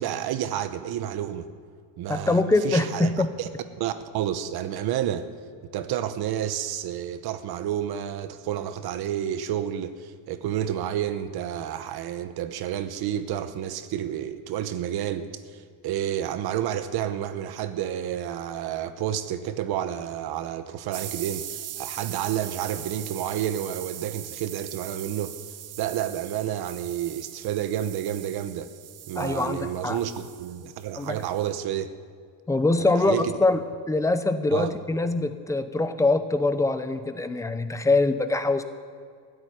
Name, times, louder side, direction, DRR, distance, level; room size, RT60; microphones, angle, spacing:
voice 1, 0.0-1.5 2.0-3.5 3.8-5.3 5.7-25.3 25.8-28.7 29.1-31.9 32.8-33.4 34.5-34.7, right 10 dB, 60° right, 10 dB, 0.9 m, -30 dB
voice 2, 2.1-3.3 29.2-30.0 31.0-31.2 32.5-33.6 33.9-38.6, left 2 dB, 5° left, 9 dB, 0.6 m, -23 dB
sound 1, 20.9-31.5, right 11 dB, 35° right, 0.6 m, -40 dB
13.5 x 8.0 x 10.0 m, 2.1 s
cardioid pair, 155°, 43 cm